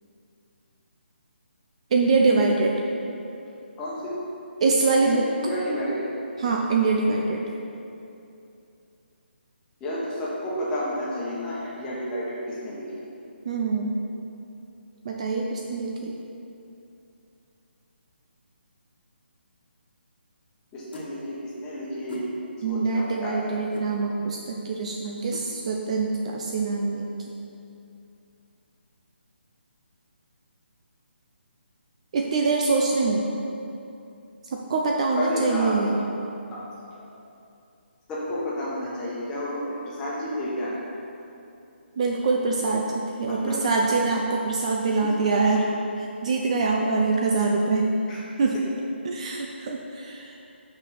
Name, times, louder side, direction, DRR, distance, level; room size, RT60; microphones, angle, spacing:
voice 1, 1.9-2.8 4.6-5.3 6.4-7.4 13.5-14.0 15.0-16.1 22.6-27.1 32.1-33.4 34.5-36.1 42.0-45.7 46.0-47.9 48.4-48.6 49.0-50.3, right 3 dB, 35° right, 0 dB, 0.5 m, -24 dB
voice 2, 3.8-4.1 5.1-6.1 9.8-12.8 20.7-22.3 22.6-23.6 35.2-35.7 36.5-36.6 38.1-40.8 43.2-43.6 45.0-45.1 48.1-48.2, left 1 dB, 10° left, -7 dB, 1.3 m, -31 dB
sound 1, 20.9-21.1 22.1-22.3 23.7-23.9 25.3-25.5, left 2 dB, 60° left, 1.5 m, -40 dB
5.8 x 5.5 x 5.8 m, 2.7 s
hypercardioid pair, 165°, 6 cm